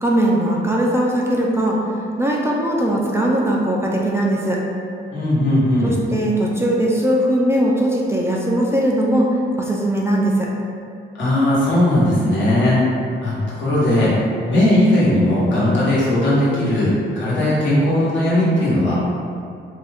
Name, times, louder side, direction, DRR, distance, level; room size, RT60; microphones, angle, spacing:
voice 1, 0.0-1.8 2.2-4.6 5.8-10.5, right 1 dB, 15° right, -3 dB, 0.3 m, -19 dB
voice 2, 5.1-6.0 11.2-12.8 13.2-14.1 14.5-18.9, left 1 dB, 65° left, -8 dB, 1.1 m, -17 dB
2.6 x 2.2 x 3.3 m, 2.4 s
cardioid pair, 90°, 20 cm